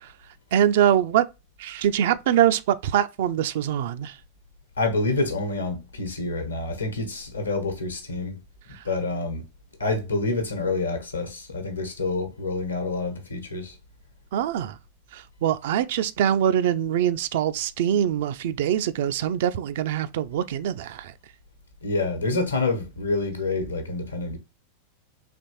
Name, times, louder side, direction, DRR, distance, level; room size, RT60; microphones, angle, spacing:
voice 1, 0.5-1.2 1.6-4.2 8.7-8.8 14.3-14.8 15.1-21.1, right 10 dB, 55° right, 0.3 m, -23 dB
voice 2, 4.8-8.4 8.8-9.5 9.8-13.8 21.8-24.4, left 3 dB, 80° left, 1.0 m, -27 dB
4.1 x 3.0 x 2.8 m
figure-of-eight pair, 90°, 0 cm